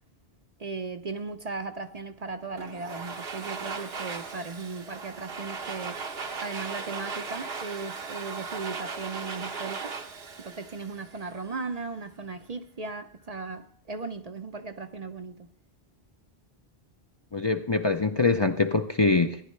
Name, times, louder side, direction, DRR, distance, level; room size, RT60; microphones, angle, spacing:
voice 1, 0.6-6.0 6.4-9.9 10.4-15.4, right 4 dB, 45° right, 0.6 m, -37 dB
Domestic sounds home sounds, 2.6-11.5, right 4 dB, 75° right, 1.3 m, -37 dB
voice 2, 17.3-19.4, left 3 dB, 35° left, 0.5 m, -24 dB
14.5 x 10.5 x 3.2 m
omnidirectional pair, 1.0 m